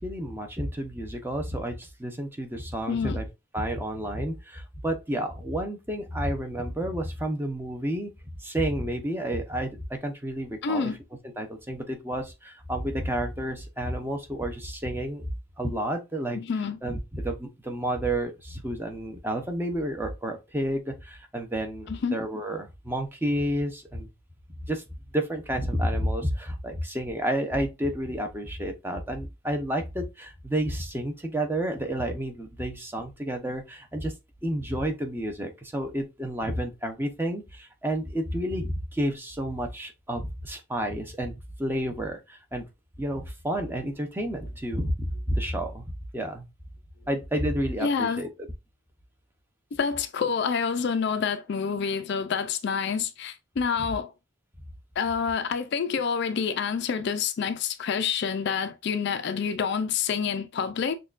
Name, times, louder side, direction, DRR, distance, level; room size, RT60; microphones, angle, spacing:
voice 1, 0.0-3.3 3.5-8.1 8.4-10.9 11.4-15.3 15.6-16.4 16.8-24.1 24.6-24.8 25.1-34.1 34.4-42.7 43.0-45.9 46.1-46.5 47.1-48.3 53.8-53.9, right 1 dB, 10° right, 0.6 m, -30 dB
voice 2, 2.9-3.2 10.6-11.0 16.3-16.8 21.9-22.2 47.8-48.2 49.8-54.1 55.0-61.0, left 6 dB, 50° left, 0.4 m, -27 dB
6.3 x 2.2 x 2.4 m
head